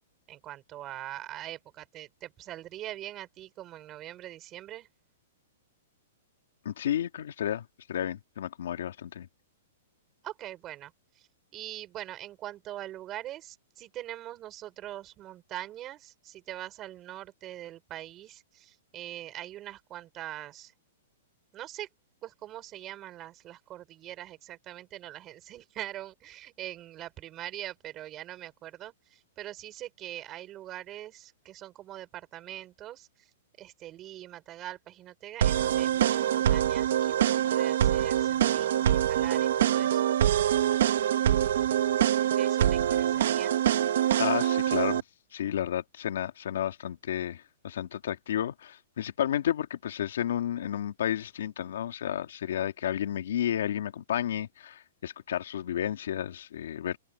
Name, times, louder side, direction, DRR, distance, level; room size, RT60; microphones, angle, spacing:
voice 1, 0.3-4.9 10.2-20.7 21.5-21.9 22.2-33.3 33.6-40.1 42.4-43.6, right 13 dB, 20° right, 5.8 m, -43 dB
voice 2, 6.6-9.3 44.2-45.0 45.3-57.0, left 10 dB, 65° left, 2.3 m, -32 dB
sound 1, 35.4-45.0, right 11 dB, 60° right, 1.3 m, -25 dB
open air
hypercardioid pair, 175°, 0 cm